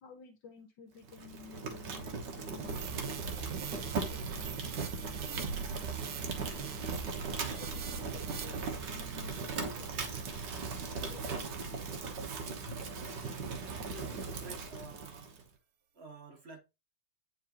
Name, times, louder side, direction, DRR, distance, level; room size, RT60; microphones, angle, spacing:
voice 1, 0.0-7.0 7.4-9.9 10.8-11.6, left 6 dB, 65° left, 1.6 m, -54 dB
Fire, 1.0-15.4, right 4 dB, 60° right, 1.6 m, -39 dB
sound 1, 2.7-11.3 11.8-12.0, right 6 dB, 80° right, 1.7 m, -43 dB
voice 2, 13.9-15.3 15.9-16.6, right 3 dB, 40° right, 1.1 m, -50 dB
9.4 x 3.8 x 2.9 m
omnidirectional pair, 2.3 m